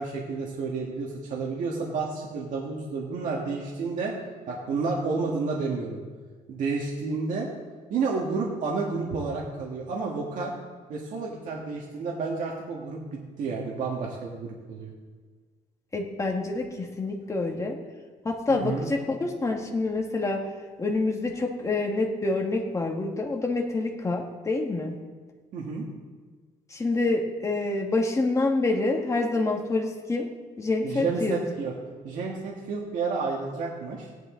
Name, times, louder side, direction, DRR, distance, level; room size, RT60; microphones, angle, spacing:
voice 1, 0.0-4.1 4.5-6.0 6.5-7.5 7.9-10.5 10.9-14.9 18.5-18.9 25.5-25.8 30.8-31.7 32.0-34.1, right 4 dB, 65° right, -2 dB, 1.8 m, -30 dB
voice 2, 15.9-17.8 18.2-20.4 20.8-25.0 26.7-30.3 30.6-31.4, left 2 dB, 20° left, 1 dB, 1.7 m, -27 dB
17.0 x 10.5 x 3.9 m, 1.5 s
cardioid pair, 120°, 14 cm